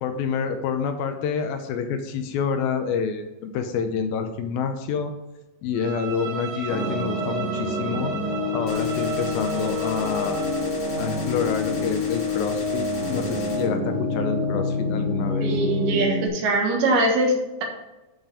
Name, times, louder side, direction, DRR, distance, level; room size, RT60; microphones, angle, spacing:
voice 1, 0.0-5.1 5.6-8.1 8.5-10.4 11.0-15.5, left 6 dB, 80° left, 7 dB, 2.5 m, -27 dB
Bowed string instrument, 5.7-10.7, right 6 dB, 55° right, 3.0 m, -36 dB
sound 1, 6.7-16.3, left 2 dB, 65° left, 3.4 m, -27 dB
Gunshot gunfire, 8.7-13.7, left 2 dB, 35° left, 1.6 m, -39 dB
voice 2, 15.4-17.6, right 2 dB, 80° right, 1 dB, 3.5 m, -22 dB
11.0 x 5.0 x 4.9 m, 1.0 s
omnidirectional pair, 4.5 m